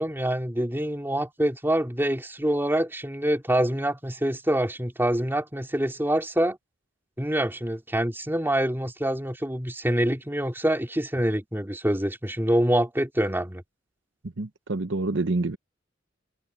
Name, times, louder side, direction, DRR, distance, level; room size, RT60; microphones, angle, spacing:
voice 1, 0.0-6.6 7.2-13.6, right 1 dB, 10° right, 2.8 m, -26 dB
voice 2, 14.4-15.6, right 2 dB, 70° right, 0.9 m, -27 dB
head